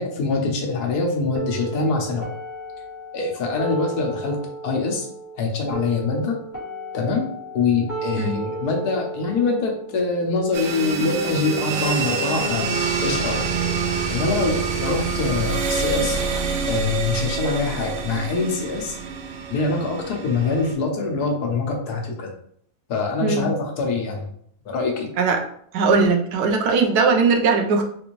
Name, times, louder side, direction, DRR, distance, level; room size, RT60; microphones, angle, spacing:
voice 1, 0.0-2.3 3.1-4.4 4.6-5.1 5.3-6.4 6.9-7.3 7.5-12.7 13.0-13.5 14.1-16.2 16.6-19.0 19.5-22.3 22.9-24.3 24.6-25.1, left 3 dB, 85° left, 1 dB, 1.3 m, -24 dB
sound 1, 1.3-11.3, right 3 dB, 30° left, 1.5 m, -35 dB
sound 2, 10.5-20.7, right 5 dB, 65° right, 0.7 m, -26 dB
voice 2, 25.7-27.8, right 4 dB, 90° right, 3 dB, 1.2 m, -19 dB
3.9 x 2.6 x 3.0 m, 0.65 s
omnidirectional pair, 1.6 m